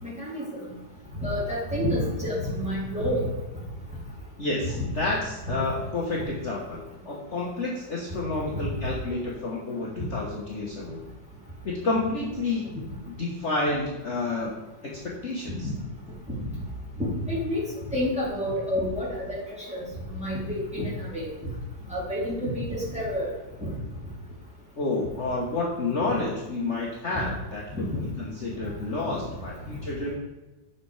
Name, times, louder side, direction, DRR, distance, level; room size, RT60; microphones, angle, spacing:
voice 1, 0.0-0.7 1.2-3.3 4.8-4.9 8.5-8.6 15.6-15.7 17.0-17.6 17.9-21.3 21.9-23.3 23.6-23.7 27.9-28.0, left 1 dB, 5° right, -7 dB, 3.0 m, -29 dB
voice 2, 4.4-11.0 11.6-12.6 13.2-14.6 15.0-15.7 24.7-30.1, left 2 dB, 45° left, -4 dB, 1.5 m, -30 dB
8.3 x 5.9 x 4.8 m, 1.1 s
omnidirectional pair, 1.9 m